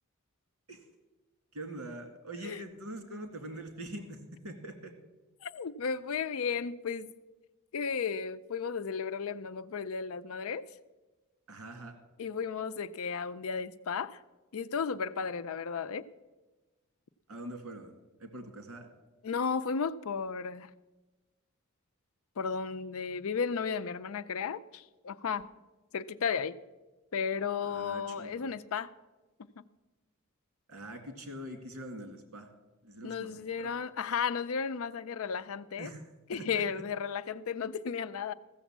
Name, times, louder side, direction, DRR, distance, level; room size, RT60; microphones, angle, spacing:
voice 1, 1.5-4.9 11.5-12.0 17.3-18.9 27.6-28.5 30.7-32.5 32.8-33.7 35.8-36.0 36.3-36.8, right 1 dB, 80° right, 2.1 m, -44 dB
voice 2, 5.4-7.1 7.7-10.7 12.2-14.2 14.5-16.1 19.2-20.7 22.4-25.5 25.9-26.5 27.1-28.9 33.0-35.9 36.3-38.3, left 6 dB, 70° left, 0.5 m, -34 dB
15.0 x 7.1 x 7.2 m
head